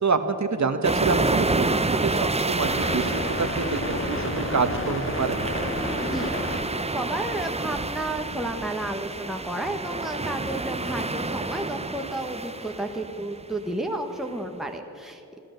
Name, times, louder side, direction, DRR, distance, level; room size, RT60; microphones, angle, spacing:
voice 1, 0.0-5.4, right 4 dB, 55° right, 8 dB, 1.1 m, -27 dB
sound 1, 0.8-13.4, right 2 dB, 20° right, 0.7 m, -29 dB
sound 2, 2.6-6.6, left 1 dB, 40° left, 2.1 m, -31 dB
voice 2, 6.0-6.4 6.7-15.4, right 1 dB, ahead, 3 dB, 1.3 m, -32 dB
14.0 x 13.5 x 6.6 m, 3.0 s
wide cardioid pair, 55°, 33 cm